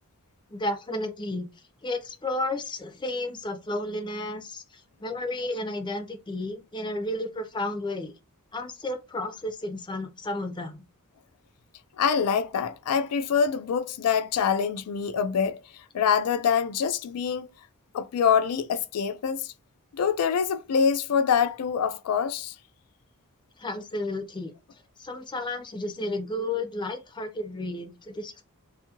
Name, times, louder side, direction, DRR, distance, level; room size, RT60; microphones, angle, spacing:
voice 1, 0.5-1.5 1.8-8.1 8.5-10.8 23.6-24.5 25.0-28.4, left 1 dB, 20° left, 0.5 m, -32 dB
voice 2, 12.0-17.5 17.9-19.5 19.9-22.6, left 7 dB, 90° left, 0.4 m, -25 dB
2.6 x 2.4 x 2.8 m
head